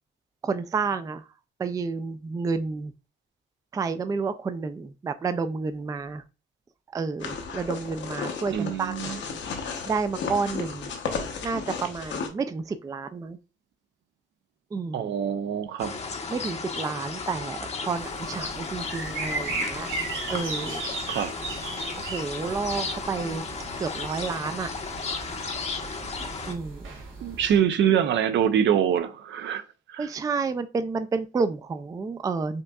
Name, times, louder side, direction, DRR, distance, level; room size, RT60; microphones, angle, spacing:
voice 1, 0.4-1.3 1.6-2.9 3.7-6.2 6.9-9.2 9.9-10.9 11.4-13.4 14.7-15.1 16.3-17.6 17.8-20.0 20.3-21.2 22.0-23.4 23.8-24.7 26.5-26.9 30.0-32.6, right 4 dB, 20° right, 0.3 m, -30 dB
sound 1, 7.2-12.3, left 5 dB, 65° left, 0.9 m, -34 dB
voice 2, 8.5-9.2 14.9-16.0 21.1-21.3 27.2-29.6 29.9-30.1, right 9 dB, 65° right, 0.5 m, -24 dB
sound 2, 15.8-26.6, left 4 dB, 35° left, 0.7 m, -34 dB
sound 3, 18.0-27.6, right 3 dB, 85° right, 1.1 m, -37 dB
5.2 x 2.6 x 2.3 m
cardioid pair, 90°, 20 cm